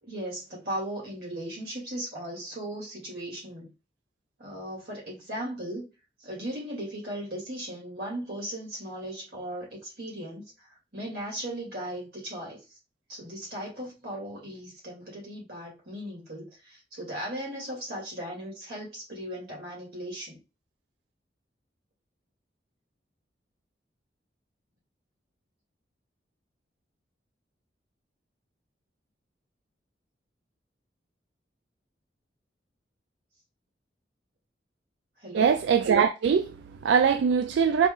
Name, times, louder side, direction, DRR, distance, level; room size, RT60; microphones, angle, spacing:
voice 1, 0.0-3.7 4.4-5.9 6.2-12.6 13.1-20.4 35.2-35.5, right 1 dB, 60° right, 2.3 m, -37 dB
voice 2, 35.3-37.9, right 6 dB, 80° right, 0.3 m, -22 dB
4.1 x 2.4 x 3.7 m
head